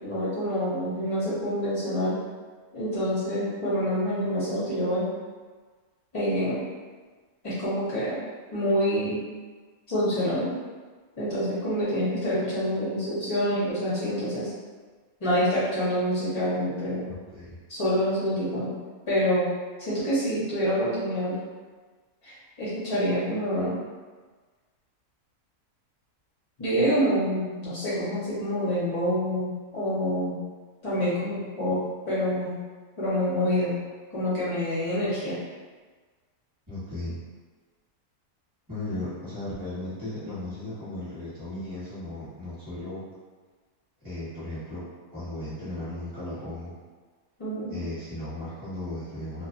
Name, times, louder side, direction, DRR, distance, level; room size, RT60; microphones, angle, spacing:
voice 1, 0.0-2.2 2.7-5.1 6.1-6.6 7.4-8.2 8.5-9.2 9.9-10.5 11.2-14.5 15.2-17.1 17.7-18.7 19.1-19.5 19.8-21.4 22.2-23.8 26.6-29.5 29.7-30.3 30.8-31.8 32.1-32.5 33.0-33.7 34.1-35.4 47.4-47.7, equal, 40° left, -10 dB, 0.4 m, -26 dB
voice 2, 17.1-17.5 36.7-37.2 38.7-43.0 44.0-44.9 45.1-46.7 47.7-49.5, left 1 dB, 15° right, -13 dB, 0.8 m, -36 dB
2.5 x 2.3 x 2.5 m, 1.4 s
omnidirectional pair, 1.6 m